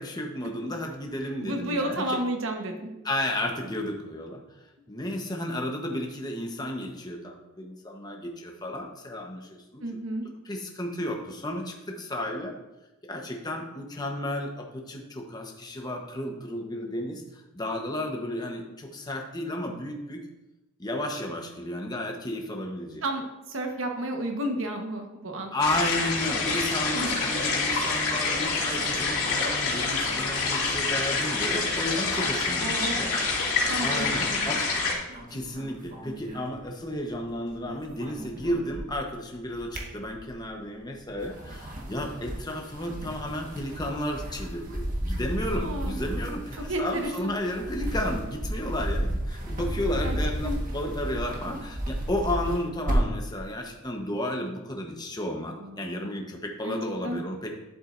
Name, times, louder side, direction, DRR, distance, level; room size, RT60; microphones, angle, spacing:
voice 1, 0.0-2.2 3.0-4.4 4.9-9.8 10.4-12.5 13.0-17.2 17.5-20.2 20.8-23.0 25.5-34.6 35.3-57.5, left 1 dB, 20° left, 2 dB, 1.0 m, -33 dB
voice 2, 1.4-2.9 9.8-10.2 23.0-25.5 26.9-27.1 32.6-33.0 33.7-34.5 45.5-46.0 46.5-47.3 50.0-50.2 50.4-50.5 55.6-56.1 56.6-56.8 57.0-57.2, right 1 dB, 65° right, 3 dB, 1.2 m, -32 dB
sound 1, 25.6-34.9, left 4 dB, 85° left, 2.4 m, -27 dB
sound 2, 35.1-37.3 37.5-39.1 39.5-40.5 41.1-53.3, equal, 40° right, 1.5 m, -33 dB
11.0 x 7.4 x 2.6 m, 1.0 s
head